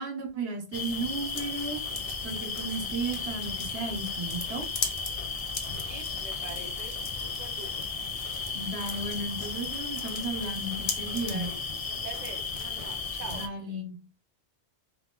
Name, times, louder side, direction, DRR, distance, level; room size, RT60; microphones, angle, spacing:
voice 1, 0.0-1.8 2.2-4.7 8.5-11.5 13.3-14.0, right 3 dB, 80° right, 1.3 m, -34 dB
sound 1, 0.7-13.5, left 4 dB, 40° left, 0.6 m, -34 dB
voice 2, 5.8-7.9 11.0-11.6 11.9-13.5, right 5 dB, 50° right, 0.8 m, -44 dB
3.1 x 3.1 x 3.7 m
omnidirectional pair, 1.1 m